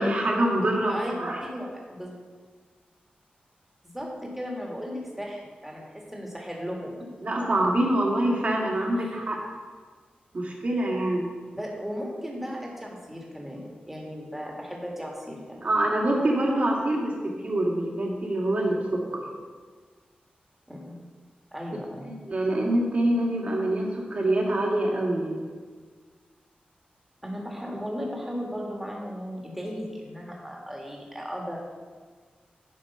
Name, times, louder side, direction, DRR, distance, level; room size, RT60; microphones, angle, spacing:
voice 1, 0.0-1.4 7.2-9.4 10.3-11.3 15.6-17.1 17.4-19.0 22.0-25.4, right 1 dB, 45° right, -1 dB, 2.0 m, -25 dB
voice 2, 1.4-2.1 3.8-6.9 8.9-9.3 11.5-15.7 20.7-21.0 21.5-22.1 27.2-31.6, equal, 5° right, -2 dB, 1.8 m, -36 dB
10.0 x 5.1 x 5.6 m, 1.5 s
wide cardioid pair, 105°, 3 cm